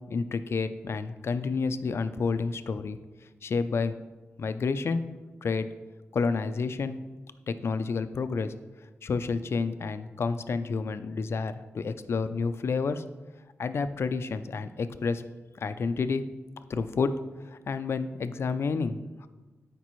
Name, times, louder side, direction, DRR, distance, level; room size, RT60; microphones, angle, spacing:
voice 1, 0.0-3.0 3.4-3.9 4.4-5.1 5.4-5.7 6.1-7.0 7.5-8.5 9.0-13.0 13.6-15.2 15.6-16.2 16.7-17.1 17.7-19.3, left 4 dB, 65° left, 11 dB, 0.5 m, -29 dB
12.5 x 5.2 x 3.1 m, 1.2 s
cardioid pair, 85°, 5 cm